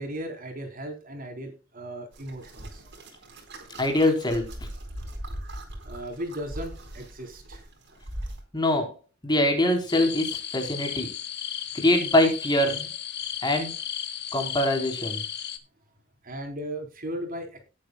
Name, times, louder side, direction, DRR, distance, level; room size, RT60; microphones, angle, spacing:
voice 1, 0.0-2.8 5.8-7.6 16.2-17.6, right 1 dB, 45° right, 4 dB, 3.9 m, -36 dB
sound 1, 2.1-8.4, right 1 dB, 60° right, 4.3 m, -40 dB
voice 2, 3.8-4.7 8.5-8.9 9.2-11.1 11.7-12.9 13.4-13.7 14.3-15.2, left 1 dB, 20° left, 3 dB, 3.8 m, -23 dB
sound 2, 9.9-15.6, left 10 dB, 55° left, 1.8 m, -34 dB
19.0 x 8.7 x 2.3 m, 0.31 s
head